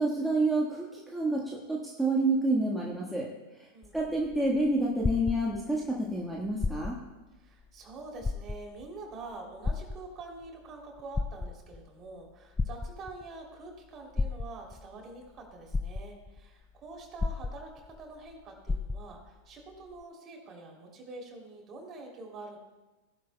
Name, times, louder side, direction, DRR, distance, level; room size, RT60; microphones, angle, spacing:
voice 1, 0.0-3.3 3.9-7.0, right 2 dB, 5° right, -4 dB, 1.6 m, -28 dB
voice 2, 3.7-4.3 7.3-22.6, right 3 dB, 35° right, 1 dB, 3.2 m, -46 dB
sound 1, 3.8-5.9 6.5-7.2 7.6-7.7 8.2-8.9 9.6-10.5 11.0-11.8 12.6-13.3 14.2-14.9 15.4-15.5 15.7-16.4 17.2-18.0 18.3-18.4 18.7-19.3 20.0-20.1, left 3 dB, 15° left, 0.4 m, -32 dB
16.5 x 11.0 x 2.3 m, 1.1 s
figure-of-eight pair, 90°, 0 cm